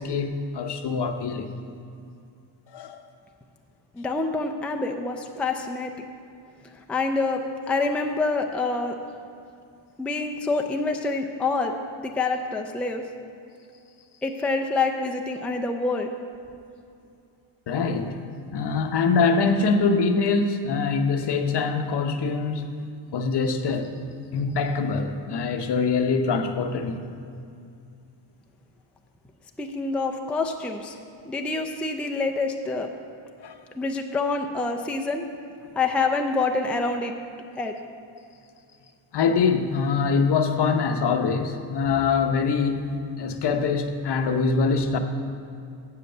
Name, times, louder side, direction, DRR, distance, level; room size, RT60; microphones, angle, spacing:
voice 1, 0.0-1.5 2.7-3.0 17.7-18.2 18.5-22.8 23.1-24.0 24.3-27.0 33.4-33.6 39.1-45.0, left 4 dB, 55° left, 6 dB, 0.8 m, -24 dB
voice 2, 3.9-5.9 6.9-9.0 10.0-13.0 14.2-16.1 29.6-31.0 31.2-32.9 33.8-35.2 35.7-37.1 37.6-37.8, left 3 dB, 5° left, 3 dB, 0.4 m, -26 dB
8.1 x 7.8 x 6.7 m, 2.5 s
cardioid pair, 125°, 49 cm